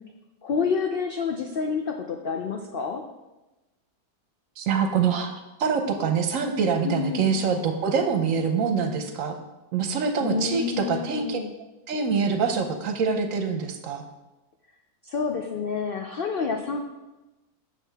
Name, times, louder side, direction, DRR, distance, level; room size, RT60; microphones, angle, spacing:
voice 1, 0.4-3.0 6.8-7.3 10.2-11.5 15.0-16.8, left 5 dB, 80° left, 3 dB, 0.5 m, -28 dB
voice 2, 4.6-9.4 9.7-11.4 11.9-14.0, right 5 dB, 65° right, 6 dB, 1.0 m, -25 dB
7.3 x 6.3 x 3.4 m, 1.1 s
omnidirectional pair, 1.6 m